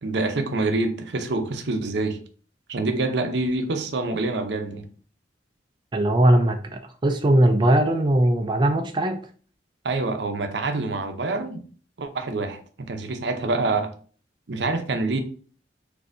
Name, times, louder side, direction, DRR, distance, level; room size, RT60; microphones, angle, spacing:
voice 1, 0.0-2.2 2.7-4.9 9.8-11.6 12.0-13.9 14.5-15.2, right 2 dB, 75° right, 0.6 m, -26 dB
voice 2, 5.9-9.2, right 1 dB, 25° right, 0.4 m, -20 dB
6.5 x 2.7 x 2.6 m
head